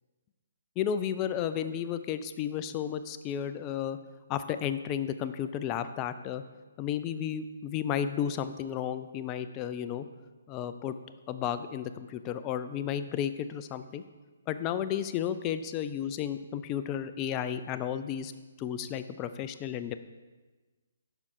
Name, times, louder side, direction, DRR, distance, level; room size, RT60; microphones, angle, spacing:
voice 1, 0.8-4.0 4.3-6.4 6.8-10.1 10.5-11.0 11.3-14.0 14.5-18.3 18.6-19.9, left 9 dB, 25° left, 11 dB, 0.4 m, -33 dB
6.8 x 5.4 x 4.7 m, 1.3 s
figure-of-eight pair, 135°, 0 cm